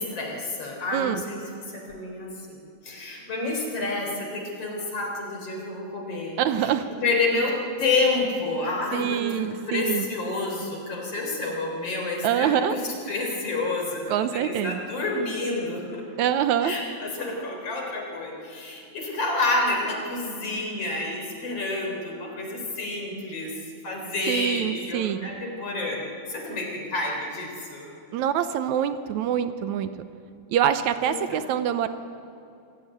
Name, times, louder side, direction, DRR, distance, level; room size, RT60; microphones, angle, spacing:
voice 1, 0.0-1.4 1.7-6.7 7.0-12.8 13.1-16.0 16.6-23.5 23.8-27.9 31.0-31.4, left 2 dB, 50° left, 1 dB, 4.7 m, -29 dB
voice 2, 0.9-1.2 6.4-6.8 8.9-10.1 12.2-12.8 14.1-14.8 16.2-16.7 24.3-25.3 28.1-29.9 30.5-31.9, right 9 dB, 80° right, 11 dB, 2.1 m, -25 dB
24.5 x 14.5 x 9.3 m, 2.7 s
omnidirectional pair, 3.4 m